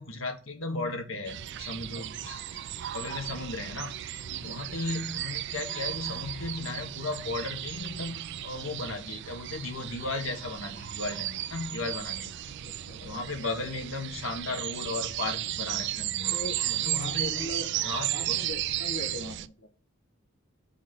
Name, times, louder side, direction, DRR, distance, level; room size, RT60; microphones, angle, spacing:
voice 1, 0.0-2.4 2.9-12.4 13.0-16.4 16.6-17.5 17.8-18.4, left 2 dB, 90° left, 5 dB, 1.4 m, -35 dB
sound 1, 1.3-19.5, right 13 dB, 60° right, 0.4 m, -34 dB
voice 2, 4.3-4.7 12.6-13.0 16.3-16.6 17.0-17.7 18.1-19.7, left 1 dB, 75° left, 2 dB, 1.3 m, -40 dB
5.8 x 4.2 x 5.9 m, 0.37 s
head